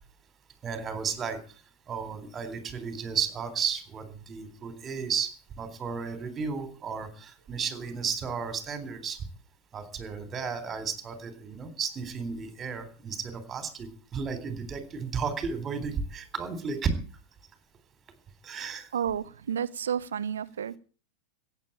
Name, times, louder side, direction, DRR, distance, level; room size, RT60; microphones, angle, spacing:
voice 1, 0.6-1.4 1.9-9.2 9.7-16.9 18.4-18.9, right 6 dB, 25° right, 3.6 m, -33 dB
voice 2, 18.9-20.8, right 8 dB, 65° right, 0.7 m, -31 dB
15.5 x 9.1 x 8.6 m
figure-of-eight pair, 90°, 0 cm